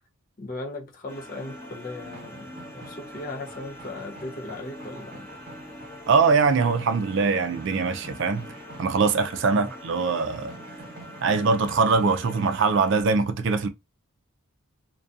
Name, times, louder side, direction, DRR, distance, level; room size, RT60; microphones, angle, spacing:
voice 1, 0.4-5.3 9.5-9.7, left 2 dB, 40° left, 0.5 m, -38 dB
sound 1, 1.1-13.0, left 1 dB, 10° left, 0.8 m, -43 dB
sound 2, 2.0-12.8, right 2 dB, 45° right, 1.1 m, -47 dB
voice 2, 6.1-8.5 8.8-10.5 11.2-13.7, right 4 dB, 60° right, 0.4 m, -22 dB
2.6 x 2.2 x 2.3 m
head